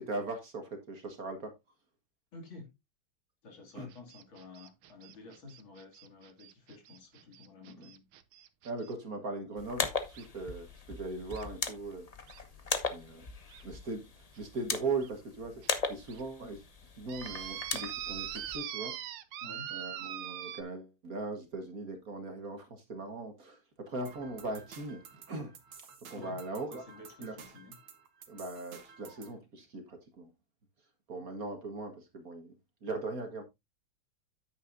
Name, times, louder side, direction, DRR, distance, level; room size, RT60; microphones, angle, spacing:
voice 1, 0.0-1.5 3.8-3.9 7.6-7.9 8.6-12.1 12.9-13.3 13.6-15.6 15.9-16.6 17.0-19.0 19.7-26.8 27.2-27.4 28.3-30.3 31.1-32.5 32.8-33.4, right 3 dB, 45° right, 1.8 m, -39 dB
voice 2, 2.3-2.7 3.4-8.0 19.4-19.7 26.1-26.4 26.7-27.8, left 3 dB, 70° left, 3.2 m, -51 dB
sound 1, 3.9-8.9 10.1-10.3 11.3-11.5 12.3-12.4 12.9-13.0 13.5-13.6 14.4-14.5 15.0-15.1 15.6-15.7 16.1-16.2 17.1-20.6, right 11 dB, 90° right, 1.7 m, -42 dB
sound 2, 9.6-18.6, left 4 dB, 45° left, 0.4 m, -38 dB
sound 3, 24.1-29.4, right 6 dB, 70° right, 2.1 m, -53 dB
9.6 x 8.9 x 2.6 m
omnidirectional pair, 2.3 m